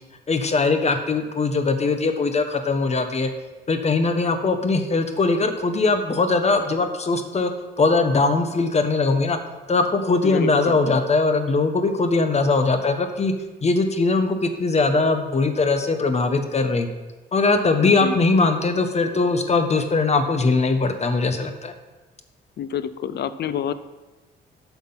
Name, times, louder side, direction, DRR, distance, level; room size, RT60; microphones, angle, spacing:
voice 1, 0.3-3.3 3.7-7.5 7.8-9.4 9.7-13.3 13.6-16.9 17.3-21.7, left 3 dB, 35° left, 7 dB, 1.0 m, -21 dB
voice 2, 10.2-10.8 17.8-18.2 22.6-23.7, left 9 dB, 55° left, 14 dB, 0.6 m, -28 dB
8.6 x 5.9 x 5.6 m, 1.2 s
cardioid pair, 90°, 20 cm